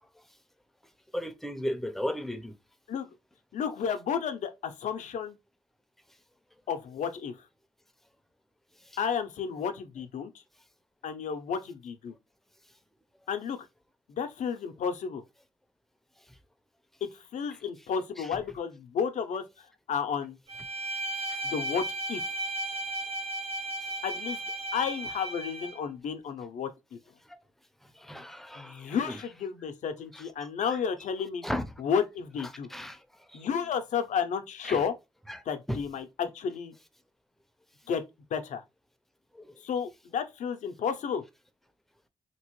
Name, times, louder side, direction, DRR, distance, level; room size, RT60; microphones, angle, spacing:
voice 1, 1.1-2.6 8.8-9.0 16.3-16.4 18.2-18.4 21.3-21.4 27.3-27.4 27.8-29.2 30.1-30.8 31.4-31.7 32.4-33.5 34.6-34.8 35.3-35.4 35.7-35.8 39.3-39.6, equal, ahead, 0.5 m, -37 dB
voice 2, 3.5-5.4 6.7-7.4 9.0-10.3 11.0-12.1 13.3-13.7 14.1-15.2 17.0-19.4 19.9-20.4 21.4-22.3 24.0-24.4 24.7-27.0 28.6-31.5 31.8-32.7 33.3-34.9 35.5-36.7 37.9-38.0 38.3-38.6 39.6-41.2, left 7 dB, 65° left, 0.6 m, -32 dB
Bowed string instrument, 20.5-25.8, right 1 dB, 50° right, 0.8 m, -35 dB
2.9 x 2.7 x 3.0 m
supercardioid pair, 60°, 13 cm